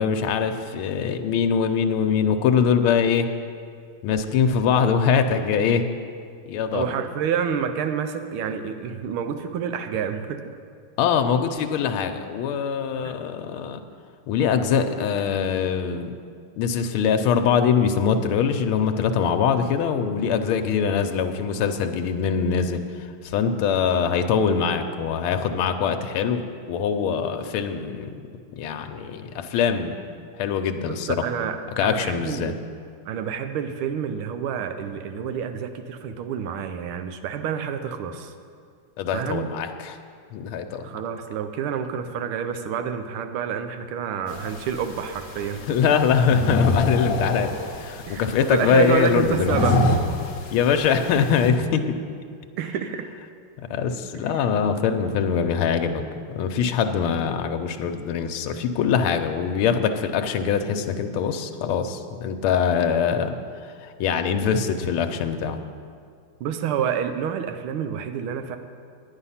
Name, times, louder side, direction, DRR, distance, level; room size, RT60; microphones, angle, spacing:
voice 1, 0.0-3.3 4.0-5.8 6.5-6.8 11.0-13.8 14.3-16.1 16.5-22.8 23.2-26.4 26.7-28.1 28.6-29.9 30.4-31.1 31.8-32.5 39.0-40.0 40.3-40.8 45.7-47.5 47.8-49.6 50.5-51.8 53.7-56.0 56.3-63.3 63.7-65.6, left 7 dB, 85° left, 6 dB, 1.5 m, -23 dB
voice 2, 6.7-10.6 13.0-13.1 30.9-32.6 33.1-38.3 39.1-39.5 40.8-45.8 48.1-49.9 52.6-53.1 54.1-54.4 66.4-68.6, right 8 dB, 80° right, 8 dB, 1.6 m, -28 dB
sound 1, 44.3-51.5, left 1 dB, 50° left, 1.0 m, -27 dB
9.9 x 9.8 x 5.6 m, 2.2 s
omnidirectional pair, 2.4 m